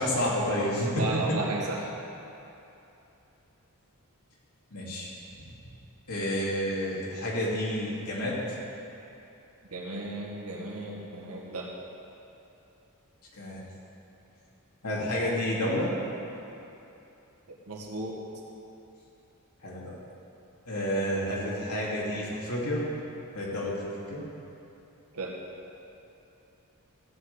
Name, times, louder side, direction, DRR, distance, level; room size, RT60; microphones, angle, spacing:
voice 1, 0.0-1.4 4.7-5.1 5.3-5.4 6.1-8.4 13.3-13.6 14.8-15.9 19.6-20.0 20.7-22.9 23.3-23.8 24.1-24.3, equal, 85° left, -6 dB, 3.1 m, -30 dB
voice 2, 0.9-1.9 9.7-11.7 17.5-18.2 25.1-25.4, right 2 dB, 85° right, -3 dB, 2.0 m, -34 dB
15.0 x 5.6 x 8.2 m, 2.9 s
head